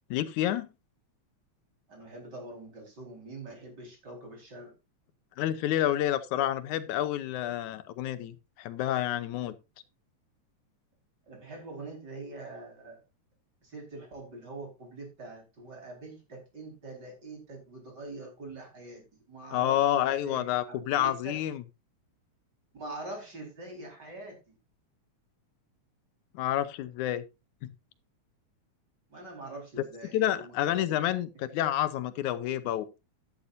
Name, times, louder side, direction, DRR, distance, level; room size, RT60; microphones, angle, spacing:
voice 1, 0.1-0.7 5.4-9.5 19.5-21.6 26.4-27.2 27.6-27.7 30.1-32.9, left 12 dB, 85° left, 2.2 m, -29 dB
voice 2, 1.9-4.7 11.3-13.0 13.6-21.4 22.7-24.5 29.1-31.0 31.5-31.6, right 2 dB, 35° right, 5.1 m, -44 dB
13.0 x 11.0 x 2.6 m
omnidirectional pair, 3.5 m